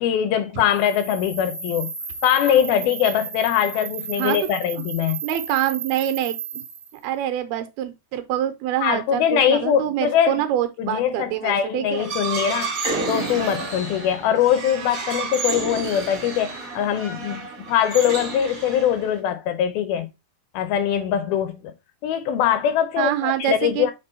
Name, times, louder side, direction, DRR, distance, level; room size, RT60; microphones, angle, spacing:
voice 1, 0.0-1.9 2.2-5.2 8.8-10.4 10.8-12.8 13.1-20.1 20.5-21.7 22.0-23.9, left 9 dB, 80° left, 2.3 m, -22 dB
sound 1, 0.6-7.0, right 6 dB, 5° left, 0.4 m, -34 dB
voice 2, 5.2-6.6 7.0-12.1 23.0-23.9, right 11 dB, 80° right, 2.4 m, -25 dB
sound 2, 11.9-19.2, right 4 dB, 60° right, 0.8 m, -30 dB
6.7 x 3.8 x 4.2 m
omnidirectional pair, 4.7 m